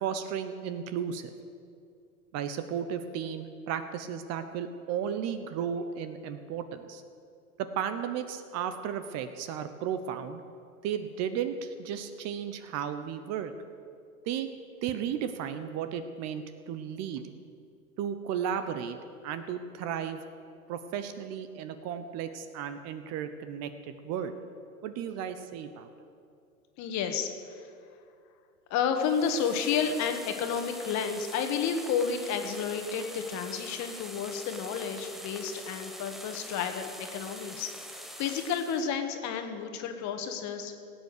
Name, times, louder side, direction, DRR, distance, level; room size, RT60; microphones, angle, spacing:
voice 1, 0.0-1.3 2.3-7.0 7.6-10.4 10.8-13.5 14.3-14.5 14.8-17.2 18.0-19.0 19.2-20.2 20.7-24.3 24.8-25.9, right 8 dB, 35° right, 10 dB, 0.8 m, -34 dB
voice 2, 26.8-27.7 28.7-40.8, left 6 dB, 40° left, 6 dB, 1.6 m, -31 dB
sound 1, 28.9-38.9, equal, ahead, 0.3 m, -44 dB
18.0 x 8.4 x 6.6 m, 2.4 s
hypercardioid pair, 110°, 45 cm